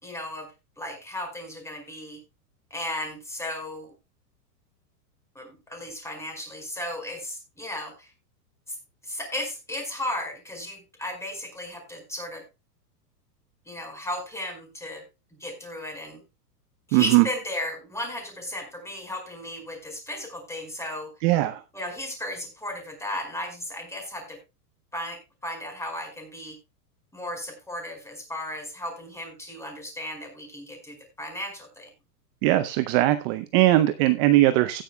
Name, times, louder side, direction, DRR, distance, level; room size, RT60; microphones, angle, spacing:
voice 1, 0.0-0.5 0.8-2.2 2.7-3.9 5.3-8.1 8.7-8.8 9.0-12.4 13.7-15.0 15.4-16.2 16.9-21.1 21.7-24.4 24.9-26.6 27.1-31.9, left 1 dB, 5° left, 3 dB, 4.8 m, -35 dB
voice 2, 16.9-17.2 21.2-21.6 32.4-34.8, right 16 dB, 35° right, 12 dB, 0.6 m, -20 dB
16.5 x 10.0 x 2.2 m, 0.26 s
hypercardioid pair, 125°, 49 cm